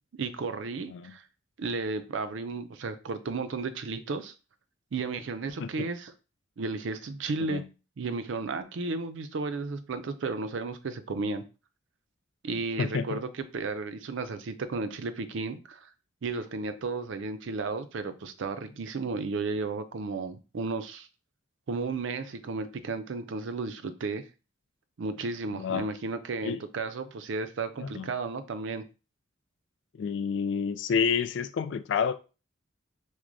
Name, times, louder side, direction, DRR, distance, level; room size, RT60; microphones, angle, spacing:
voice 1, 0.2-1.2 1.6-4.3 4.9-6.1 6.6-7.6 8.0-11.4 12.4-15.9 16.2-21.1 21.7-24.3 25.0-28.8, right 3 dB, 70° right, 0.4 m, -33 dB
voice 2, 12.8-13.2 25.5-25.9 26.4-26.6 27.8-28.1 30.0-32.1, left 6 dB, 60° left, 0.3 m, -29 dB
6.0 x 2.1 x 2.6 m
head